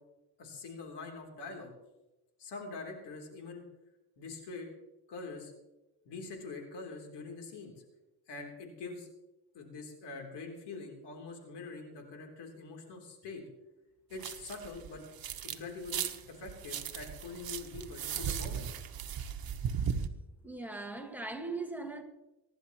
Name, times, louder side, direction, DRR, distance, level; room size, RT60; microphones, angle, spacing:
voice 1, 0.4-1.7 2.4-3.6 4.2-4.7 5.1-5.5 6.1-7.8 8.3-9.1 9.5-13.4 14.1-15.0 15.4-18.7, left 3 dB, 85° left, 3.5 m, -44 dB
sound 1, 14.1-15.6 15.9-20.1, right 8 dB, 60° right, 1.2 m, -37 dB
voice 2, 20.4-22.0, right 3 dB, 5° right, 1.8 m, -39 dB
24.0 x 11.5 x 3.1 m
cardioid pair, 100°, 40 cm